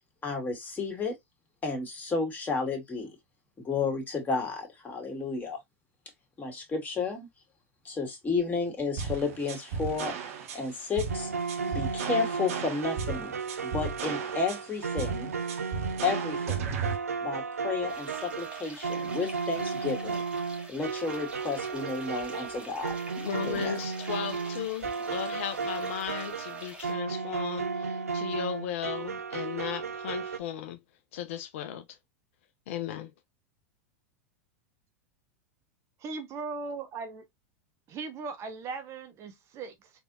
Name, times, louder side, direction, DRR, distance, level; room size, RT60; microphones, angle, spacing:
voice 1, 0.2-1.2 1.6-3.2 3.6-5.6 6.4-7.3 7.8-10.2 10.5-11.3 11.6-13.3 13.6-15.3 16.0-16.7 17.2-20.2 20.7-23.0 23.4-23.8, left 4 dB, 20° left, 2.4 m, -32 dB
sound 1, 9.0-17.0, right 6 dB, 65° right, 1.1 m, -35 dB
sound 2, 11.1-30.4, right 5 dB, 85° right, 0.6 m, -34 dB
sound 3, 17.9-26.9, right 2 dB, 15° right, 1.8 m, -47 dB
voice 2, 23.2-30.8 31.1-32.0 32.7-33.1, left 9 dB, 60° left, 0.7 m, -36 dB
voice 3, 36.0-37.3 37.9-39.9, right 4 dB, 40° right, 1.2 m, -38 dB
4.2 x 3.4 x 2.6 m
hypercardioid pair, 90°, 8 cm